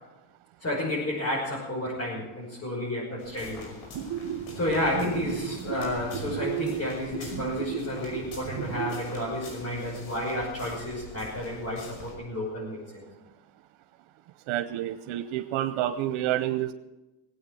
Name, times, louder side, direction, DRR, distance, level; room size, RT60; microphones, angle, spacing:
voice 1, 0.6-3.7 4.5-13.0, left 1 dB, 30° left, -6 dB, 5.8 m, -31 dB
sound 1, 3.2-12.2, left 3 dB, 75° left, 5.6 m, -45 dB
sound 2, 3.9-9.0, right 10 dB, 70° right, 2.1 m, -34 dB
voice 2, 14.5-16.7, right 13 dB, 90° right, 9 dB, 0.9 m, -28 dB
20.0 x 8.6 x 7.7 m, 1.1 s
cardioid pair, 130°, 47 cm